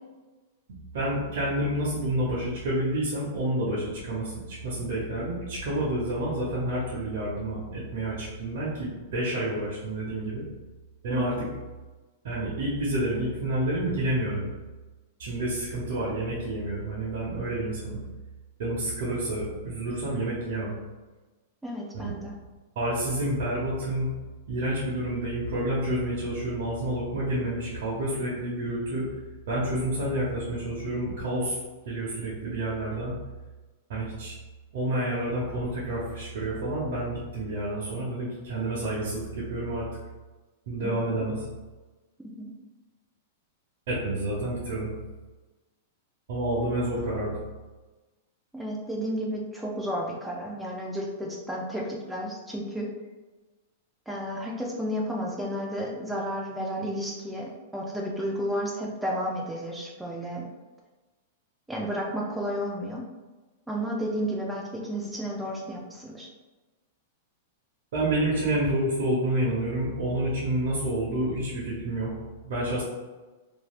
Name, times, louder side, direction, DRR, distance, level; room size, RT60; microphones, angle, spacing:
voice 1, 0.7-10.5 11.0-11.5 12.2-14.5 15.2-18.0 18.6-20.7 21.9-22.1 22.8-24.1 24.5-29.1 29.5-31.6 31.9-33.1 33.9-34.3 34.7-39.9 40.7-41.5 43.9-44.9 46.3-47.4 67.9-72.1 72.4-72.8, right 1 dB, 65° right, -8 dB, 0.9 m, -29 dB
voice 2, 11.1-11.5 21.6-22.3 40.8-41.2 42.4-42.5 48.5-52.9 54.1-60.4 61.7-63.1 63.7-66.3, equal, 5° right, -2 dB, 0.4 m, -32 dB
3.1 x 2.7 x 2.4 m, 1.2 s
hypercardioid pair, 140°, 0 cm